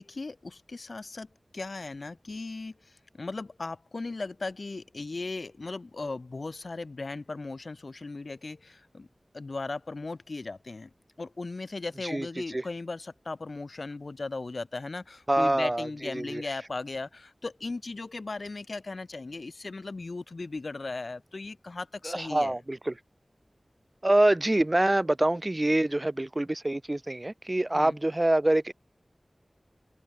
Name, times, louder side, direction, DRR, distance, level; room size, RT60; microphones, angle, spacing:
voice 1, 0.0-9.1 9.3-10.9 11.2-22.6 27.7-28.0, left 3 dB, 75° left, 0.7 m, -37 dB
voice 2, 15.3-15.9 16.1-16.4 22.0-22.9 24.0-28.7, right 1 dB, 35° right, 0.8 m, -25 dB
open air
wide cardioid pair, 40°, 0 cm